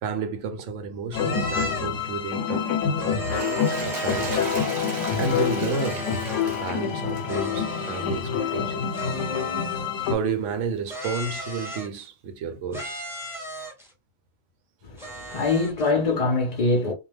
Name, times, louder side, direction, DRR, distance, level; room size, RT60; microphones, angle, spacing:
voice 1, 0.0-2.7 3.0-3.2 3.8-6.2 6.4-8.8 10.0-13.0, right 5 dB, 80° right, 0.9 m, -31 dB
sound 1, 1.1-10.1, left 7 dB, 90° left, 0.9 m, -27 dB
sound 2, 1.1-2.0 3.0-4.6 5.7-6.5 7.3-8.3 8.9-10.1 10.9-12.1 12.7-13.9 15.0-15.9, right 1 dB, 5° right, 0.6 m, -36 dB
Toilet flush, 3.2-8.7 9.4-9.5, right 2 dB, 40° right, 0.7 m, -37 dB
voice 2, 14.8-16.9, left 3 dB, 55° left, 0.4 m, -24 dB
2.4 x 2.1 x 3.2 m
omnidirectional pair, 1.2 m